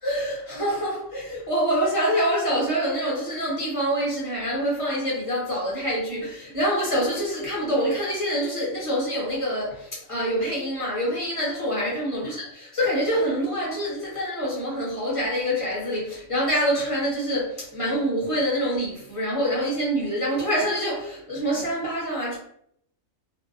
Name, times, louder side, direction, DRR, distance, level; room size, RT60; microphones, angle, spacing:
voice 1, 0.0-22.4, equal, 30° left, 0.8 m, -26 dB
2.6 x 2.1 x 2.5 m
omnidirectional pair, 1.4 m